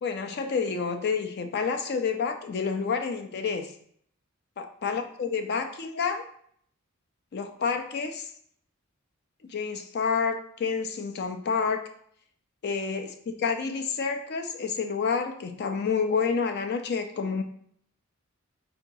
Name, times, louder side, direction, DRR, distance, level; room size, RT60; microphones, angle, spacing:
voice 1, 0.0-3.7 4.6-6.2 7.3-8.3 9.4-11.9 12.6-17.4, left 5 dB, 50° left, 5 dB, 0.4 m, -29 dB
4.4 x 2.8 x 3.9 m, 0.64 s
head